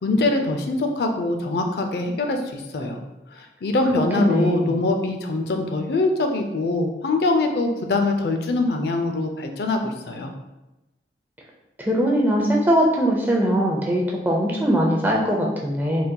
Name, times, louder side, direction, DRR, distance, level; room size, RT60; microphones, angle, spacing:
voice 1, 0.0-3.0 3.4-10.3, left 2 dB, 65° left, 4 dB, 0.4 m, -23 dB
voice 2, 4.2-4.8 11.8-16.1, equal, 10° right, -2 dB, 0.4 m, -21 dB
3.8 x 2.7 x 2.2 m, 0.99 s
head